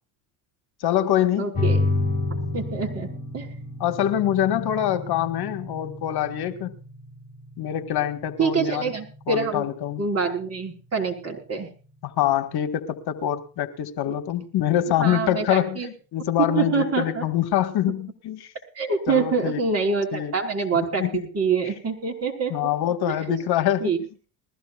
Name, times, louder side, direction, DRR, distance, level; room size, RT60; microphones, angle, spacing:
voice 1, 0.8-1.6 3.8-6.7 7.6-8.9 9.3-10.0 12.0-18.5 19.1-19.6 20.1-20.3 21.0-21.2 21.6-21.7 22.5-24.1, left 11 dB, 55° left, 8 dB, 1.9 m, -25 dB
voice 2, 1.4-1.8 2.5-3.1 3.3-3.5 8.4-9.7 10.0-11.7 14.0-14.1 15.0-15.9 16.5-17.2 18.8-22.5 23.3-23.4 23.8-24.0, right 5 dB, 30° right, 3 dB, 5.0 m, -25 dB
sound 1, 1.5-12.6, left 2 dB, 20° left, 3.8 m, -31 dB
21.0 x 15.5 x 2.5 m, 0.37 s
cardioid pair, 115°, 46 cm